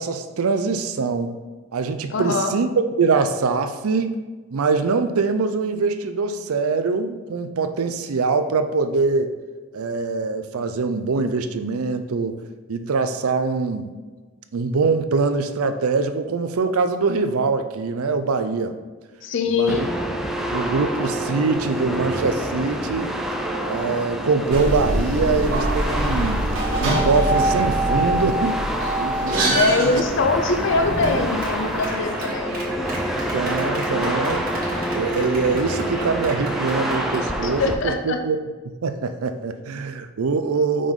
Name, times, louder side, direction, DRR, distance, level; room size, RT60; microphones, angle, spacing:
voice 1, 0.0-1.4 1.7-4.2 4.5-9.3 9.7-12.4 12.7-13.9 14.5-18.8 19.5-19.9 20.5-23.2 23.7-26.5 26.8-28.6 29.0-30.0 33.3-34.5 34.9-38.4 38.8-40.9, right 4 dB, 80° right, 9 dB, 0.5 m, -23 dB
voice 2, 2.1-2.5 19.2-19.9 29.5-32.6 37.4-38.2, left 3 dB, 55° left, 6 dB, 0.5 m, -22 dB
sound 1, 19.7-37.7, equal, ahead, 0.3 m, -27 dB
sound 2, 24.5-31.9, right 1 dB, 60° right, 1.4 m, -24 dB
Clapping, 30.7-37.3, right 2 dB, 40° right, 1.3 m, -35 dB
5.4 x 5.0 x 3.7 m, 1.3 s
head